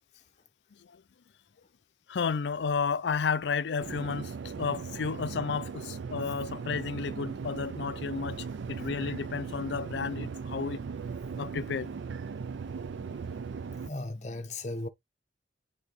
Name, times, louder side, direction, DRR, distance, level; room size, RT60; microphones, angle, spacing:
voice 1, 2.1-4.3 4.6-10.9 11.4-11.9, left 5 dB, 65° left, 0.4 m, -32 dB
sound 1, 3.8-13.9, right 5 dB, 75° right, 0.4 m, -38 dB
voice 2, 8.0-8.4 13.7-14.9, left 2 dB, 40° left, 0.9 m, -38 dB
6.6 x 2.8 x 5.5 m
head